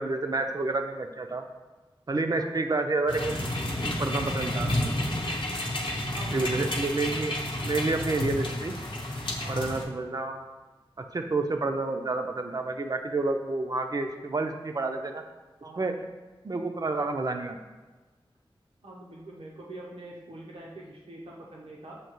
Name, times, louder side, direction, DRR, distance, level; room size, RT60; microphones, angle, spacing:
voice 1, 0.0-1.4 2.1-4.7 6.3-7.3 7.6-8.7 9.5-10.4 11.1-15.2 15.8-15.9 16.4-17.6, right 3 dB, 40° right, 5 dB, 0.4 m, -29 dB
sound 1, 3.1-9.8, left 1 dB, 55° left, 0.7 m, -31 dB
voice 2, 6.1-6.7 9.4-9.9 15.6-15.9 18.8-22.0, right 2 dB, 85° right, -3 dB, 0.7 m, -44 dB
6.5 x 2.7 x 3.0 m, 1.3 s
wide cardioid pair, 90°, 9 cm